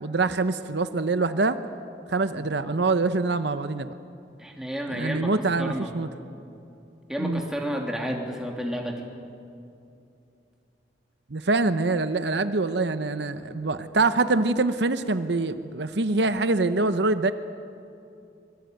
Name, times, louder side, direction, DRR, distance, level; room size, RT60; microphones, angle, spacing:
voice 1, 0.0-1.6 2.1-3.9 4.9-6.1 7.2-7.4 11.3-17.3, right 3 dB, 70° right, 11 dB, 0.8 m, -24 dB
voice 2, 4.4-5.3 5.6-6.0 7.1-9.1, equal, 5° right, 0 dB, 3.0 m, -31 dB
25.0 x 22.0 x 9.4 m, 2.6 s
head